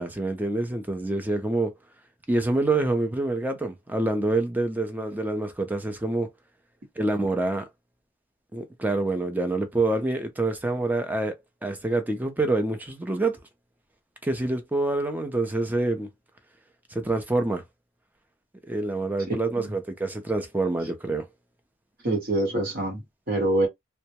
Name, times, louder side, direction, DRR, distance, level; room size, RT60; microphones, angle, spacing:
voice 1, 0.0-1.7 2.3-6.3 7.0-7.7 8.5-13.4 14.2-16.1 16.9-17.6 18.7-21.3, right 2 dB, 10° right, 0.4 m, -26 dB
voice 2, 19.3-19.7 22.0-23.7, right 2 dB, 50° right, 1.0 m, -26 dB
2.2 x 2.0 x 2.7 m
head